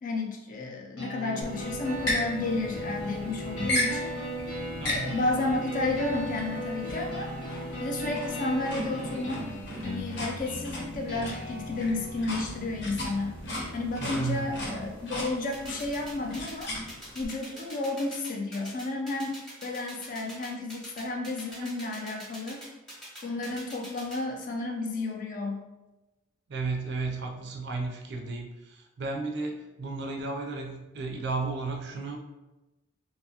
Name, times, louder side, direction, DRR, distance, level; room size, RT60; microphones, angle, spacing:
voice 1, 0.0-4.1 4.8-7.3 7.8-9.5 9.8-13.4 13.7-16.7 17.1-22.6 23.2-25.6, left 2 dB, 40° left, 1 dB, 0.3 m, -32 dB
sound 1, 1.0-15.0, equal, 90° left, 1.1 m, -38 dB
sound 2, 1.4-17.2, left 1 dB, 55° left, 0.7 m, -36 dB
voice 2, 4.8-5.2 14.0-14.6 21.5-21.9 26.5-32.2, right 3 dB, 55° right, 2 dB, 0.4 m, -34 dB
sound 3, 15.5-24.2, equal, ahead, 0.7 m, -44 dB
2.7 x 2.3 x 2.7 m, 1.0 s
head